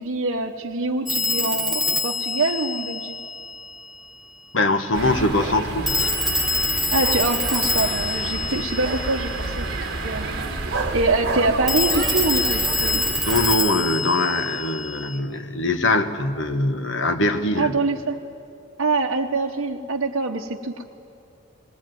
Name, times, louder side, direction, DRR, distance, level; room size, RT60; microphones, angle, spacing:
voice 1, 0.0-3.2 6.9-9.7 10.0-13.0 17.5-18.2 18.8-20.8, right 3 dB, 70° right, 0 dB, 0.9 m, -25 dB
Telephone, 1.1-3.7 5.9-9.5 11.7-15.2, left 2 dB, ahead, 1.2 m, -25 dB
voice 2, 4.5-6.4 10.2-10.4 13.2-17.8, left 2 dB, 60° left, 7 dB, 1.3 m, -23 dB
sound 1, 4.9-13.5, right 2 dB, 50° right, 1.6 m, -29 dB
20.5 x 19.0 x 9.3 m, 2.5 s
head